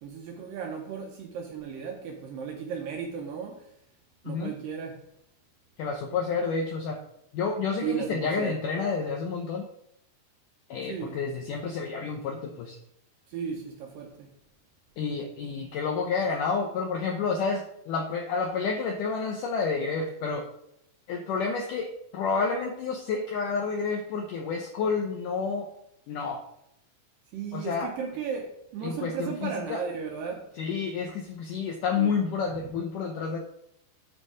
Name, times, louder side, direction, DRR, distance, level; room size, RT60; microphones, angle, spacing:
voice 1, 0.0-3.7 4.2-5.0 7.8-8.6 10.8-11.2 13.3-14.3 27.3-30.5 32.0-32.2 32.5-32.7, right 6 dB, 75° right, 2.2 m, -35 dB
voice 2, 5.8-7.0 7.3-9.7 10.7-12.8 15.0-20.5 21.1-25.7 26.1-26.4 27.5-27.9 28.8-29.8 30.6-33.4, left 5 dB, 80° left, 1.9 m, -29 dB
10.0 x 4.5 x 4.9 m
omnidirectional pair, 4.8 m